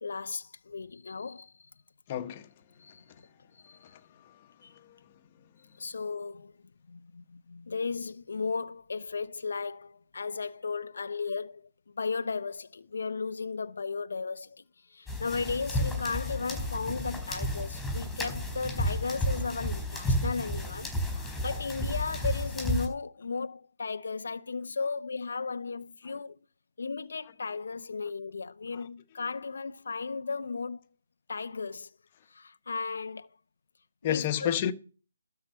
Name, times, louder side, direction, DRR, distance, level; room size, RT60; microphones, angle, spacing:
voice 1, 0.0-1.5 2.8-3.3 3.6-3.8 4.6-4.7 5.8-6.5 6.9-11.7 12.0-14.6 14.9-20.9 21.4-26.4 26.8-30.8 31.3-31.9 32.3-33.3 34.0-34.5, left 4 dB, 70° left, 0.6 m, -35 dB
voice 2, 2.1-2.5 21.1-21.4 34.0-34.7, left 10 dB, 30° left, 1.3 m, -29 dB
sound 1, 15.1-22.9, equal, 5° left, 4.3 m, -32 dB
12.5 x 4.8 x 8.2 m
hypercardioid pair, 155°, 0 cm